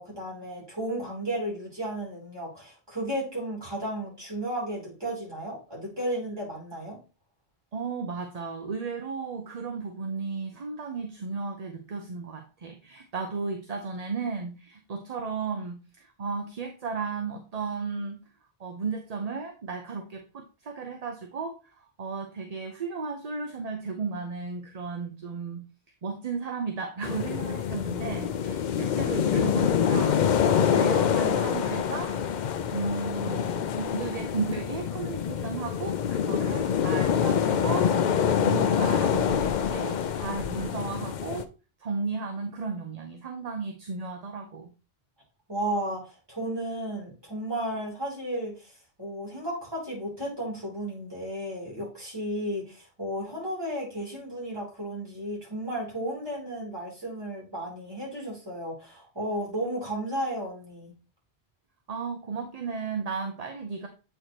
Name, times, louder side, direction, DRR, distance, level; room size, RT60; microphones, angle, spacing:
voice 1, 0.0-7.0 45.5-48.7 49.0-60.9, right 1 dB, 25° right, -5 dB, 3.3 m, -33 dB
voice 2, 7.7-18.2 18.6-25.6 26.0-32.2 32.7-41.5 41.8-44.7 61.9-63.9, right 4 dB, 40° right, 4 dB, 0.7 m, -34 dB
sound 1, 27.0-41.4, left 8 dB, 55° left, 0.5 m, -26 dB
8.2 x 4.4 x 3.0 m, 0.33 s
omnidirectional pair, 1.1 m